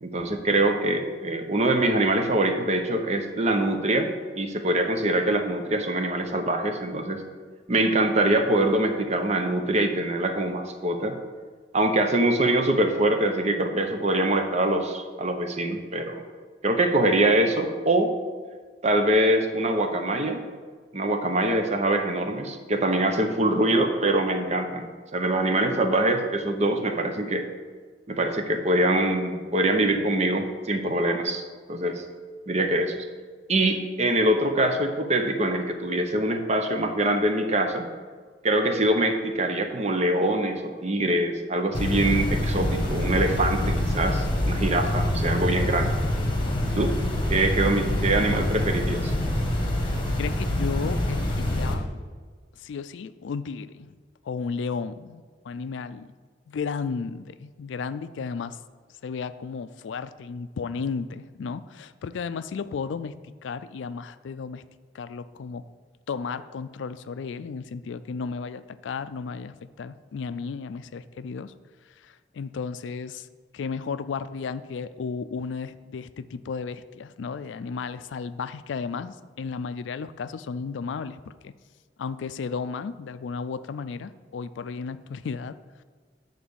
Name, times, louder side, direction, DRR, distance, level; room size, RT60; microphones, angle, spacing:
voice 1, 0.0-7.2 7.7-11.2 11.7-16.2 16.6-18.1 18.8-20.4 20.9-24.9 25.1-27.4 28.1-31.4 31.7-32.0 32.5-33.1 33.5-37.9 38.4-46.0 46.7-46.9 47.3-49.1, right 1 dB, 40° right, 5 dB, 0.8 m, -24 dB
sound 1, 41.7-51.7, left 1 dB, 30° left, 1.2 m, -26 dB
voice 2, 49.8-51.9 52.6-53.9 54.2-56.1 56.5-58.6 59.0-64.6 64.9-65.6 66.1-71.5 72.0-73.3 73.5-81.5 82.0-85.6, left 5 dB, 80° left, 14 dB, 0.4 m, -34 dB
8.6 x 4.0 x 6.9 m, 1.6 s
head